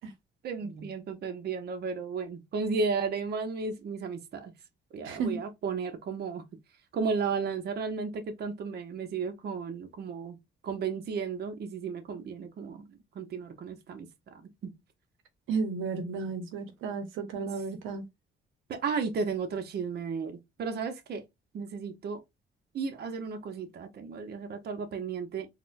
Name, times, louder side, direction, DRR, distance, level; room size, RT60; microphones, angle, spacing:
voice 1, 0.4-4.5 4.9-6.4 6.9-10.4 10.6-14.1 14.6-14.7 18.7-21.2 21.5-22.2 22.7-25.5, right 5 dB, 55° right, 0.7 m, -34 dB
voice 2, 5.0-5.4 15.5-18.0, right 4 dB, 85° right, 0.8 m, -33 dB
4.1 x 2.2 x 2.5 m
cardioid pair, 90°, 20 cm